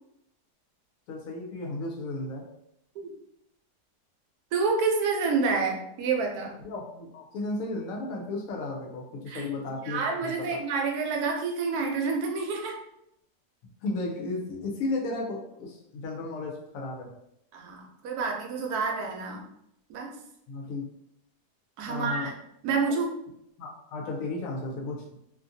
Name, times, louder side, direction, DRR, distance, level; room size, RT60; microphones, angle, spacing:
voice 1, 1.1-2.5 6.6-10.6 13.8-17.1 20.5-20.9 21.8-22.3 23.6-25.1, left 2 dB, 70° left, 0 dB, 0.9 m, -34 dB
voice 2, 4.5-6.5 9.3-12.8 17.5-19.4 19.9-20.1 21.8-22.3 22.6-23.1, right 4 dB, 75° right, 1 dB, 1.1 m, -28 dB
2.7 x 2.5 x 2.6 m, 0.78 s
omnidirectional pair, 1.7 m